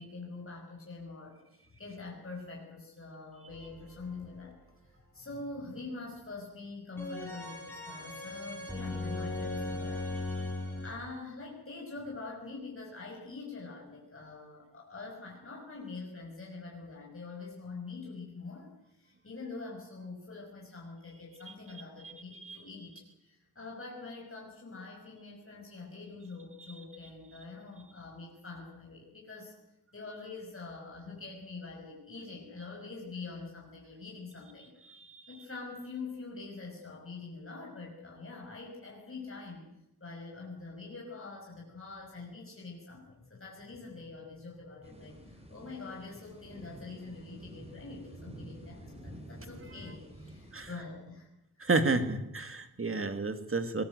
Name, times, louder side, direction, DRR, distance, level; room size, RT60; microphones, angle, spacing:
voice 1, 0.0-1.4 1.8-4.6 4.8-10.1 10.8-18.7 19.0-29.5 29.9-34.8 35.3-39.7 40.0-51.3, left 3 dB, 35° left, -2 dB, 5.9 m, -45 dB
sound 1, 3.5-4.3 7.0-10.9, left 2 dB, 5° left, 7.6 m, -38 dB
sound 2, 44.8-50.8, equal, 15° right, 4.8 m, -49 dB
voice 2, 51.6-53.8, right 3 dB, 35° right, 8 dB, 2.3 m, -30 dB
22.0 x 19.5 x 8.0 m, 0.85 s
wide cardioid pair, 140°, 38 cm